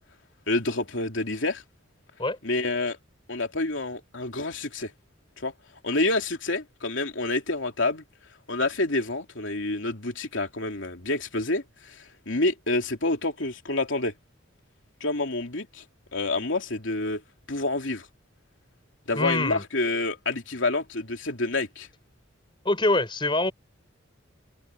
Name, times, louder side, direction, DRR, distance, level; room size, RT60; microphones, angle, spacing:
voice 1, 0.5-1.6 2.4-3.0 3.3-4.9 5.4-5.5 5.8-8.0 8.5-14.1 15.0-15.8 16.1-17.2 17.5-18.1 19.1-21.9, left 2 dB, 70° left, 3.1 m, -28 dB
voice 2, 19.1-19.6 22.6-23.5, left 2 dB, 25° left, 4.4 m, -24 dB
head